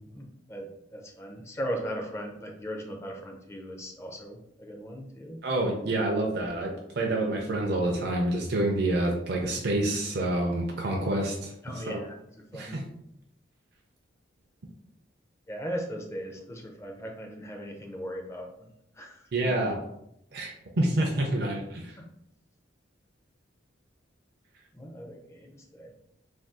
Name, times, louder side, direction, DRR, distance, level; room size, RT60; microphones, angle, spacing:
voice 1, 0.1-5.4 11.6-12.2 12.5-12.8 15.5-18.7 19.0-19.6 24.7-25.9, equal, 15° left, 2 dB, 0.4 m, -38 dB
voice 2, 5.4-12.0 12.5-12.9 19.3-19.8 20.3-20.5 20.8-22.0, right 1 dB, 55° right, -1 dB, 0.4 m, -28 dB
2.6 x 2.3 x 3.5 m, 0.77 s
head